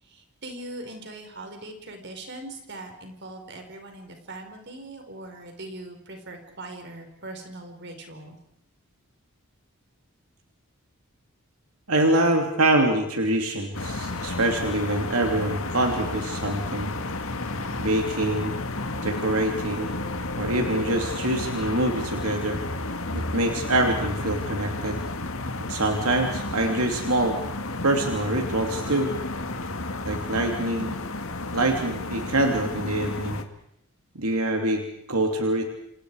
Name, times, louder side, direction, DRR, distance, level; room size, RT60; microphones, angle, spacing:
voice 1, 0.0-8.4, right 2 dB, 50° right, 5 dB, 5.1 m, -41 dB
voice 2, 11.9-16.9 17.8-18.5 19.0-19.9 20.4-22.6 23.1-25.0 25.7-27.4 27.8-29.1 30.0-31.0 31.5-33.4 34.1-35.7, right 1 dB, 80° right, 3 dB, 3.0 m, -25 dB
sound 1, 13.7-33.4, left 2 dB, 65° left, 2.2 m, -32 dB
28.5 x 28.0 x 5.0 m, 0.76 s
head